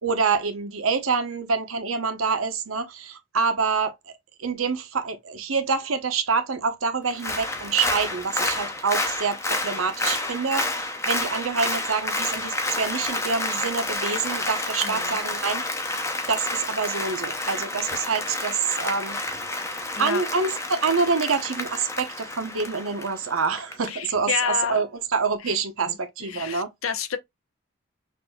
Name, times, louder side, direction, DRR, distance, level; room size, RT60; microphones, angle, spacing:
voice 1, 0.0-3.9 4.4-10.6 11.1-15.6 16.3-19.2 20.0-24.9 25.1-26.7, right 5 dB, 85° right, 0.9 m, -26 dB
Applause, 7.1-23.7 24.1-24.2, left 2 dB, 15° left, 0.5 m, -29 dB
voice 2, 14.8-15.2 20.0-20.2 23.9-24.8 25.4-25.5 25.9-27.2, left 6 dB, 80° left, 0.7 m, -30 dB
5.9 x 2.6 x 2.2 m
head